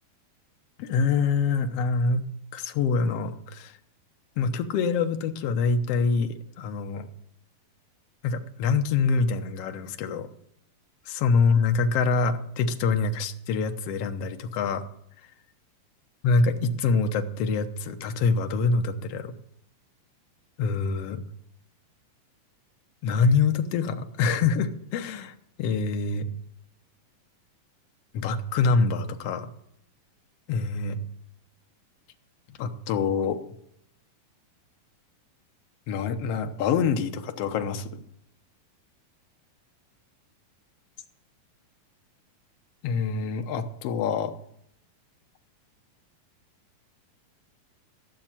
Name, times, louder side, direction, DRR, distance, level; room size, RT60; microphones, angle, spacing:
voice 1, 0.8-2.2 2.5-3.7 4.4-7.1 8.2-10.3 11.1-14.8 16.2-19.3 20.6-21.2 23.0-26.3 28.1-29.5 30.5-31.0 32.6-33.4 35.9-38.0 42.8-44.3, left 4 dB, 75° left, 6 dB, 1.4 m, -25 dB
14.5 x 7.2 x 9.0 m, 0.74 s
omnidirectional pair, 4.1 m